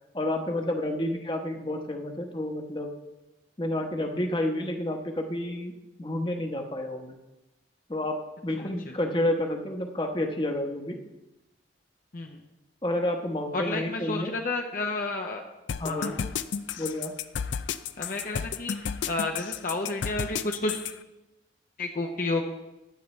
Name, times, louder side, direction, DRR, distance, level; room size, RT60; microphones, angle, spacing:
voice 1, 0.1-2.9 3.6-5.7 6.0-7.2 7.9-8.2 8.4-11.0 12.8-14.3 15.8-16.1 16.8-17.2, left 1 dB, 25° left, 3 dB, 1.0 m, -30 dB
voice 2, 8.6-8.9 12.1-12.4 13.5-15.4 15.8-16.1 18.0-18.8 19.1-20.8 21.8-22.4, left 2 dB, 45° left, 2 dB, 0.8 m, -31 dB
sound 1, 15.7-20.9, left 7 dB, 75° left, 0.5 m, -32 dB
15.0 x 10.0 x 3.2 m, 1.0 s
head